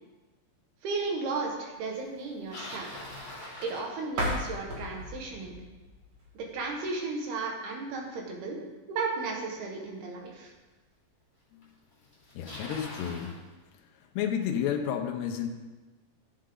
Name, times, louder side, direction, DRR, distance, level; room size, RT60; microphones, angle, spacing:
voice 1, 0.8-3.0 3.6-5.5 6.4-8.6 8.9-10.5, right 3 dB, 70° right, 0 dB, 3.5 m, -34 dB
Bicycle, 2.2-4.5 9.6-9.7 10.5-10.6 11.6-11.7 11.9-13.4, left 1 dB, 15° left, 3.8 m, -43 dB
sound 1, 4.1-6.9, equal, 45° right, 2.7 m, -36 dB
voice 2, 12.3-13.4 14.2-15.5, left 8 dB, 85° left, 2 dB, 3.1 m, -31 dB
14.0 x 8.6 x 3.9 m, 1.2 s
omnidirectional pair, 4.8 m